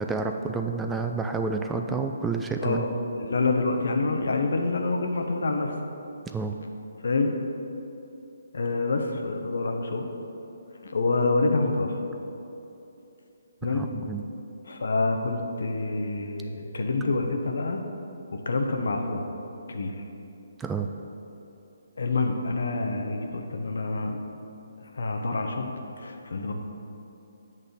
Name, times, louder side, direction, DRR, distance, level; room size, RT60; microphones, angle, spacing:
voice 1, 0.0-2.8 6.3-6.6 13.7-14.2 20.6-20.9, right 4 dB, 10° right, 4 dB, 0.3 m, -29 dB
voice 2, 3.2-5.7 7.0-7.3 8.5-10.1 10.8-11.9 13.6-13.8 14.7-17.8 18.3-19.2 19.7-20.0 22.0-24.2 24.8-26.5, left 3 dB, 70° left, 3 dB, 0.9 m, -27 dB
8.1 x 3.6 x 6.6 m, 2.9 s
figure-of-eight pair, 145°, 0 cm